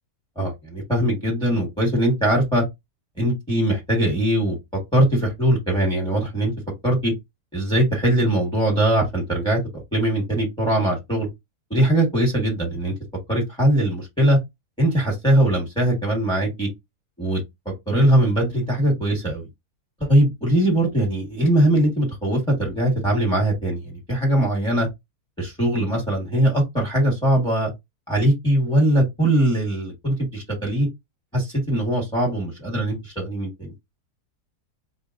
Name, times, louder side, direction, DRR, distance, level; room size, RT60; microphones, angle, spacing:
voice 1, 0.3-2.6 3.2-4.6 4.9-6.5 6.8-7.1 7.5-9.6 9.9-11.3 11.7-12.9 13.3-14.4 14.8-16.7 17.2-17.4 17.9-19.4 20.0-24.9 25.4-27.7 28.1-30.9 31.3-33.7, right 1 dB, 5° left, 1.3 m, -21 dB
4.9 x 2.9 x 2.5 m
omnidirectional pair, 1.7 m